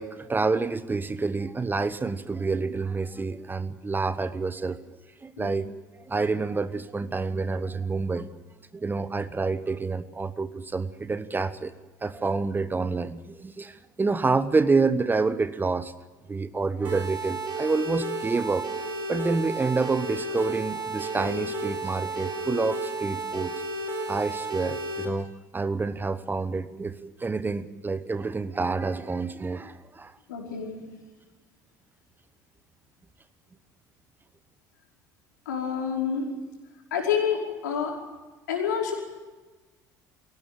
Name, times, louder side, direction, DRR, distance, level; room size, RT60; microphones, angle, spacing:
voice 1, 0.0-4.8 5.2-5.7 6.1-8.3 8.7-11.7 12.0-15.9 16.3-18.7 19.1-23.5 24.1-30.1, right 4 dB, 20° right, 14 dB, 1.2 m, -28 dB
sound 1, 16.8-25.0, right 2 dB, 50° right, 4.8 m, -33 dB
voice 2, 30.3-30.8 35.4-36.3 36.9-38.0 38.5-38.9, left 7 dB, 75° left, 1 dB, 4.9 m, -28 dB
23.0 x 17.5 x 8.9 m, 1.2 s
figure-of-eight pair, 60°, 10 cm